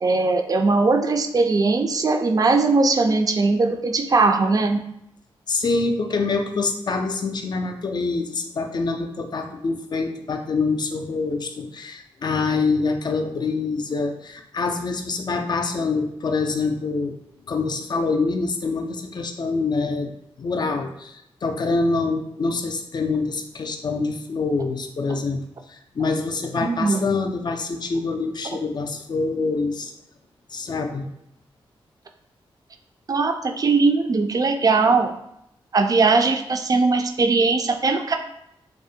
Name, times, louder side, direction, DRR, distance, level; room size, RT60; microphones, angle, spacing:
voice 1, 0.0-4.8 26.6-27.2 33.1-35.1 35.7-38.2, right 3 dB, 40° right, 5 dB, 0.3 m, -20 dB
voice 2, 5.5-17.2 17.5-20.1 20.4-25.4 25.7-29.9 30.5-31.1, left 3 dB, 45° left, 5 dB, 0.4 m, -25 dB
2.4 x 2.1 x 2.6 m, 0.77 s
cardioid pair, 50°, 10 cm